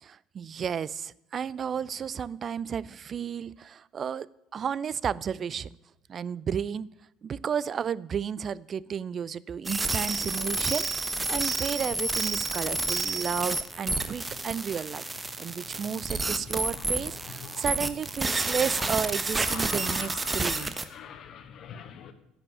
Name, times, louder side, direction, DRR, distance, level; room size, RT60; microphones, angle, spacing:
voice 1, 0.0-5.8 6.1-6.9 7.2-15.0 15.4-20.8, right 7 dB, 40° right, 22 dB, 0.5 m, -32 dB
sound 1, 9.7-20.9, right 3 dB, 20° right, 1.1 m, -30 dB
voice 2, 15.3-17.9 18.3-22.1, left 8 dB, 50° left, 9 dB, 1.4 m, -45 dB
10.5 x 7.2 x 9.4 m, 0.85 s
hypercardioid pair, 60°, 0 cm